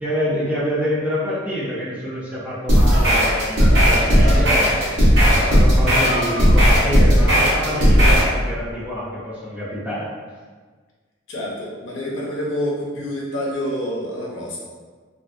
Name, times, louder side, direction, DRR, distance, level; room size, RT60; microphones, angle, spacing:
voice 1, 0.0-5.0 5.3-10.1, equal, 10° right, -9 dB, 0.6 m, -27 dB
sound 1, 2.4-2.5 2.9-3.2 3.6-3.9 4.2-4.6 5.3-5.6 5.9-6.6 7.3-7.8, right 1 dB, 80° right, 0.5 m, -30 dB
sound 2, 2.7-8.3, equal, 60° right, 1.1 m, -15 dB
voice 2, 11.3-14.6, equal, 70° left, -5 dB, 0.7 m, -27 dB
2.9 x 2.6 x 2.5 m, 1.5 s
head